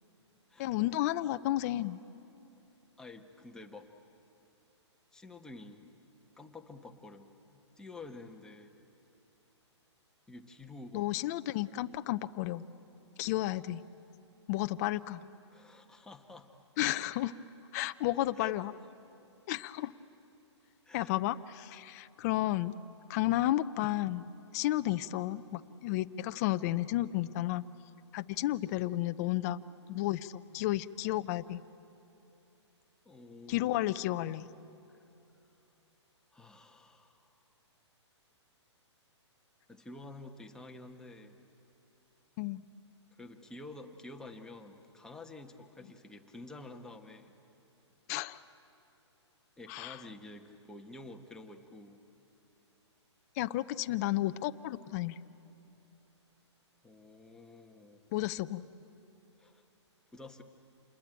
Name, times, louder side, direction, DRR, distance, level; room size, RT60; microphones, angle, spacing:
voice 1, 0.6-2.0 10.9-12.6 13.2-13.8 14.5-15.3 16.8-17.4 17.7-18.7 19.5-19.9 20.9-22.8 23.1-27.6 28.1-29.6 29.9-31.6 33.5-34.5 42.4-42.6 48.1-48.4 49.7-50.0 53.4-55.2 58.1-58.6, left 15 dB, 35° left, 11 dB, 0.6 m, -32 dB
voice 2, 3.0-3.9 5.1-5.9 6.4-8.8 10.3-11.1 15.5-16.5 18.4-18.5 20.8-21.2 33.0-33.8 34.9-35.0 36.3-37.5 39.7-41.4 43.1-47.3 49.6-52.0 56.8-58.0 59.4-59.6 60.1-60.4, left 2 dB, 5° left, 3 dB, 1.3 m, -49 dB
27.5 x 21.5 x 9.1 m, 2.9 s
hypercardioid pair, 140°, 15 cm